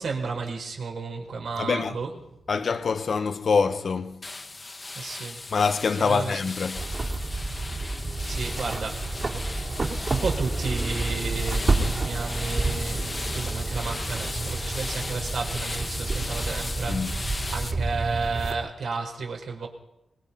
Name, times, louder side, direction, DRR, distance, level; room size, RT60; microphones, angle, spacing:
voice 1, 0.0-2.2 4.9-5.5 6.1-6.4 7.9-19.7, right 4 dB, 65° right, 4.8 m, -33 dB
voice 2, 1.6-2.0 2.5-4.3 5.5-6.8 16.9-17.1, left 5 dB, 45° left, 1.1 m, -25 dB
sound 1, 4.2-17.7, left 3 dB, 20° left, 1.4 m, -36 dB
sound 2, 6.8-18.5, right 3 dB, 35° right, 3.2 m, -29 dB
24.5 x 22.0 x 5.7 m
wide cardioid pair, 165°, 0 cm